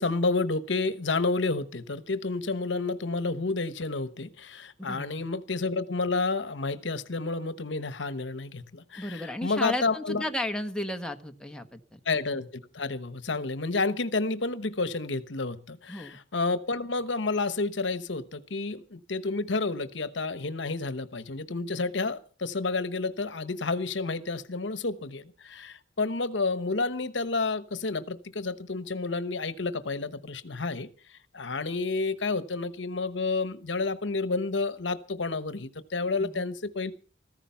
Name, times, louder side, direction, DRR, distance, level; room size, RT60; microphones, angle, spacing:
voice 1, 0.0-10.2 12.0-12.5 12.7-30.9 31.3-36.9, left 3 dB, 70° left, 1.1 m, -30 dB
voice 2, 9.0-12.0 15.9-16.2 36.2-36.5, left 1 dB, 5° left, 1.3 m, -34 dB
15.0 x 14.5 x 5.7 m
head